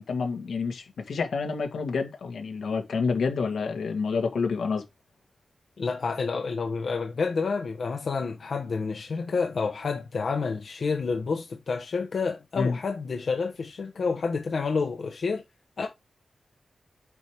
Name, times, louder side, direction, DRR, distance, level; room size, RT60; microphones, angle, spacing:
voice 1, 0.0-4.8 12.6-12.8, left 5 dB, 80° left, 1.8 m, -28 dB
voice 2, 5.8-15.4 15.8-15.9, left 4 dB, 50° left, 1.0 m, -29 dB
8.2 x 4.8 x 3.5 m
wide cardioid pair, 175°, 0 cm